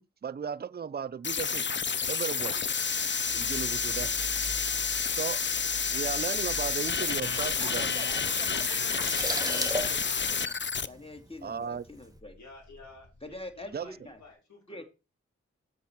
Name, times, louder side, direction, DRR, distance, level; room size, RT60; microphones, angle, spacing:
voice 1, 0.0-1.7 2.1-2.6 3.3-4.1 5.1-5.4 5.9-7.9 8.9-9.0 11.4-11.9 13.7-13.9, right 7 dB, 35° right, 0.5 m, -35 dB
sound 1, 1.2-10.9, left 5 dB, 40° left, 0.6 m, -29 dB
sound 2, 2.9-11.1 11.5-14.1, equal, 55° left, 2.3 m, -48 dB
sound 3, 6.8-11.5 11.8-12.0, right 1 dB, 15° right, 1.6 m, -37 dB
voice 2, 7.6-10.6 10.9-12.3 13.2-14.2 14.7-14.8, left 1 dB, 20° left, 2.4 m, -45 dB
voice 3, 12.4-14.8, left 2 dB, 70° left, 4.2 m, -52 dB
7.4 x 7.1 x 4.6 m
cardioid pair, 45°, 29 cm